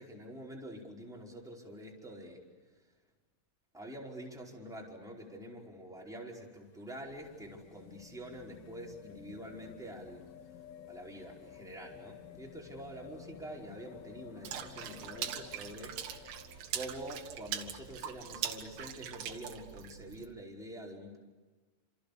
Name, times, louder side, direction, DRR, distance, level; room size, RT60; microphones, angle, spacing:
voice 1, 0.0-2.4 3.7-10.3 10.9-16.3 16.7-21.2, right 1 dB, ahead, -2 dB, 4.2 m, -46 dB
sound 1, 6.6-17.4 18.6-18.7, left 9 dB, 65° left, 2.9 m, -53 dB
Water / Splash splatter, 14.4-20.3, right 10 dB, 65° right, 3.0 m, -41 dB
29.0 x 27.5 x 6.9 m, 1.3 s
omnidirectional pair, 5.6 m